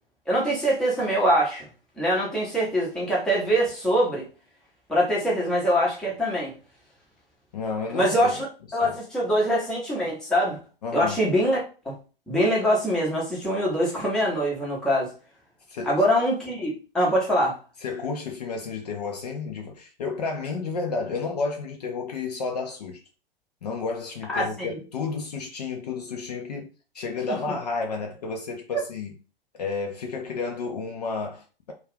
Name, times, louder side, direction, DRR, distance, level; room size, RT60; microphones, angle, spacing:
voice 1, 0.3-1.7 2.0-4.3 4.9-6.5 7.9-8.4 8.7-10.6 10.9-11.6 11.8-11.9 12.3-15.1 15.8-17.5 24.3-24.8 27.3-27.4, equal, ahead, 0.6 m, -23 dB
voice 2, 7.5-8.3 8.8-9.0 10.8-11.2 15.7-16.0 17.8-23.0 23.6-29.1 29.6-31.7, left 4 dB, 45° left, 0.4 m, -31 dB
2.3 x 2.3 x 3.3 m
figure-of-eight pair, 110°, 30 cm